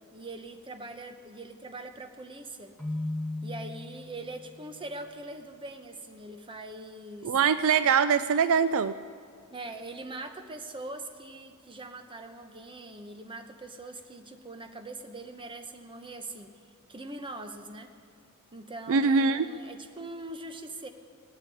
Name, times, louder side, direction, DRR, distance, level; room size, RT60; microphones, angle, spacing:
voice 1, 0.0-2.7 3.4-7.4 9.5-16.5 16.9-17.9 18.5-20.9, right 2 dB, 25° right, 6 dB, 1.0 m, -42 dB
Keyboard (musical), 2.8-4.6, left 2 dB, 5° left, 1.5 m, -36 dB
voice 2, 7.2-8.9 18.9-19.5, right 6 dB, 65° right, 13 dB, 0.4 m, -23 dB
19.0 x 9.0 x 8.4 m, 2.2 s
head